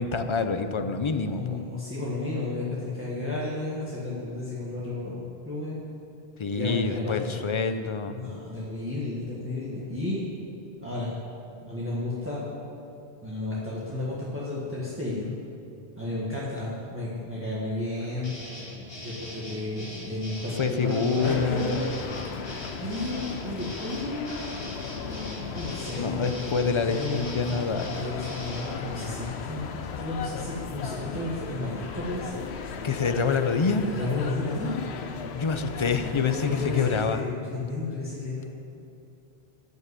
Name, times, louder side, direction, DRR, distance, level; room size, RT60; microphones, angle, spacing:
voice 1, 0.0-1.6 6.4-8.2 20.6-21.8 26.0-28.1 32.8-33.8 35.3-37.2, left 5 dB, 35° left, 8 dB, 0.5 m, -26 dB
voice 2, 1.3-5.8 6.5-7.4 8.1-10.2 10.8-11.1 11.6-12.5 13.2-15.3 16.0-18.4 19.0-21.9 22.8-24.4 25.0-27.3 28.0-29.6 30.0-32.4 33.8-34.8 36.3-38.5, left 2 dB, 10° right, -8 dB, 1.7 m, -32 dB
sound 1, 18.2-28.7, left 1 dB, 65° left, 2.5 m, -41 dB
sound 2, 21.2-37.1, left 6 dB, 85° left, 1.0 m, -36 dB
13.5 x 5.5 x 8.2 m, 2.7 s
omnidirectional pair, 1.1 m